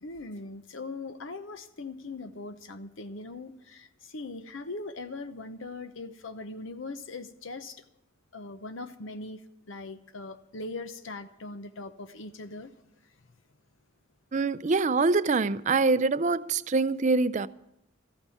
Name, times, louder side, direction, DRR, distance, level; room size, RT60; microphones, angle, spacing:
voice 1, 0.0-7.8 8.3-9.4 9.7-12.7, left 3 dB, 70° left, 0.8 m, -40 dB
voice 2, 14.3-17.5, right 3 dB, 35° right, 0.4 m, -24 dB
14.0 x 9.0 x 8.4 m
head